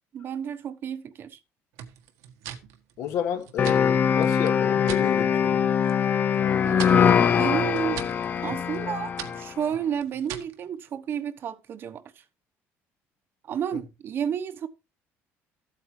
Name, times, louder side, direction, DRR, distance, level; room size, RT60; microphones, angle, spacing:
voice 1, 0.1-1.4 6.7-8.0 8.4-12.2 13.5-14.7, right 8 dB, 45° right, 1.1 m, -31 dB
sound 1, 1.8-5.1 5.5-6.0 6.3-10.6, right 10 dB, 85° right, 1.6 m, -41 dB
voice 2, 3.0-5.7, left 9 dB, 70° left, 2.2 m, -31 dB
sound 2, 3.6-9.5, left 8 dB, 35° left, 0.5 m, -22 dB
14.0 x 8.4 x 3.3 m
cardioid pair, 140°, 5 cm